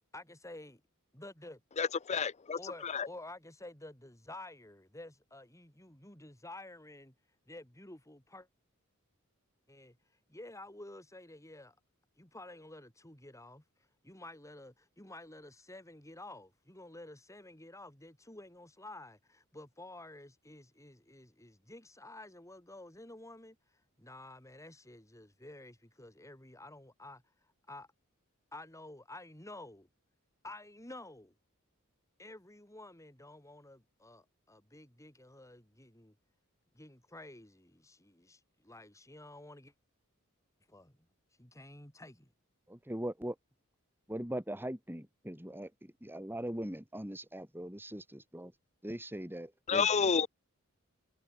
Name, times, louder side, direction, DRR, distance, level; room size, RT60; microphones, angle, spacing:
voice 1, 0.1-0.8 1.1-1.6 2.6-7.1 7.5-8.5 9.7-11.7 12.2-27.9 28.5-29.9 30.4-31.3 32.2-36.1 36.7-39.7 40.7-40.9 41.3-42.3, left 2 dB, 15° left, 4.4 m, -51 dB
voice 2, 1.8-3.1 49.7-50.3, left 6 dB, 30° left, 0.5 m, -30 dB
voice 3, 42.7-43.4 44.1-48.5 48.8-50.1, right 1 dB, 10° right, 3.3 m, -41 dB
head